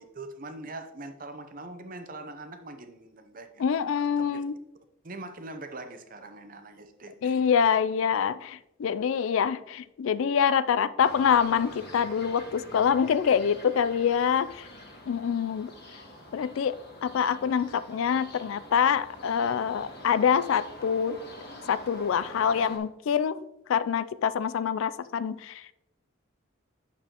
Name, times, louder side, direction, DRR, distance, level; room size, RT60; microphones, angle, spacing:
voice 1, 0.0-4.4 5.0-7.5, right 2 dB, 40° right, 7 dB, 0.7 m, -43 dB
voice 2, 3.6-4.6 7.2-14.7 15.1-15.7 16.3-16.8 17.0-21.2 21.7-23.4 23.7-25.7, left 7 dB, 70° left, 16 dB, 0.3 m, -25 dB
sound 1, 11.0-22.8, left 1 dB, 50° left, 1.7 m, -46 dB
8.9 x 6.9 x 2.9 m, 0.87 s
head